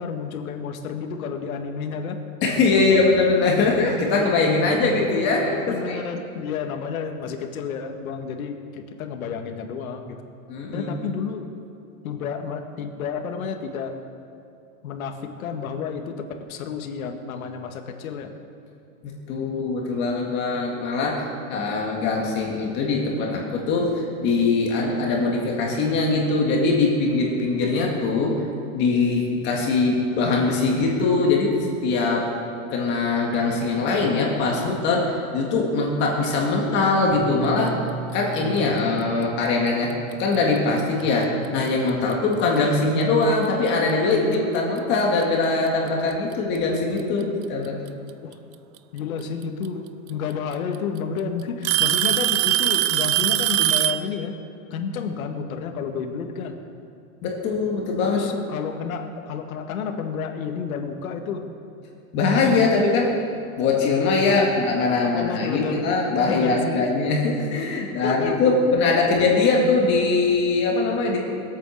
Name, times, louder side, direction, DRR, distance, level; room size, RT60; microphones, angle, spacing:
voice 1, 0.0-2.2 2.8-3.0 5.7-10.2 10.7-11.5 12.0-14.0 14.8-18.3 48.2-48.4 48.9-54.3 54.7-56.6 58.0-61.5 64.3-64.5 65.1-65.9 66.2-67.0 68.0-68.9, left 6 dB, 85° left, 4 dB, 1.9 m, -31 dB
voice 2, 2.4-6.0 10.5-11.0 19.0-28.4 28.7-31.5 31.8-32.3 32.7-37.7 38.1-39.9 40.2-47.8 57.2-58.2 62.1-63.1 63.6-71.2, left 3 dB, 25° left, -1 dB, 2.0 m, -22 dB
Bass guitar, 37.1-43.3, right 6 dB, 50° left, 2.9 m, -39 dB
Alarm / Tick-tock, 40.1-40.4 41.2-41.3 42.1-42.2 43.9-44.0 45.2-45.3 46.6-47.0 48.8-48.9 50.1-50.2 50.5-51.0 51.6-54.1, right 14 dB, 85° right, 0.8 m, -21 dB
21.5 x 8.6 x 6.4 m, 2.6 s
supercardioid pair, 175°, 41 cm